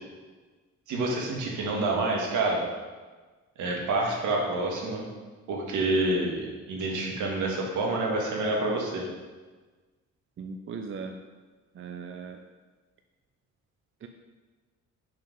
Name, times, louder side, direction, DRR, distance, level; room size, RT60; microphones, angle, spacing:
voice 1, 0.9-2.6 3.6-5.1 5.5-9.0, right 2 dB, 80° right, 0 dB, 1.7 m, -28 dB
voice 2, 10.4-11.1 11.7-12.4 14.0-14.1, right 5 dB, 40° right, 5 dB, 0.6 m, -38 dB
6.2 x 4.9 x 5.2 m, 1.3 s
cardioid pair, 90°, 30 cm